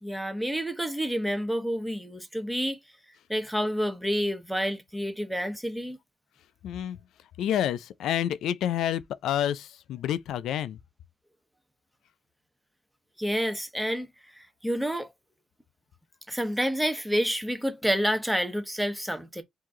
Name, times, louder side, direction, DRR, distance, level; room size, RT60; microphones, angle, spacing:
voice 1, 0.0-2.8 3.3-6.0 13.2-14.1 14.4-15.1 16.3-19.4, equal, ahead, 1.0 m, -29 dB
voice 2, 6.6-7.0 7.4-10.8, left 10 dB, 80° left, 0.4 m, -29 dB
4.7 x 2.8 x 3.7 m
cardioid pair, 135°, 0 cm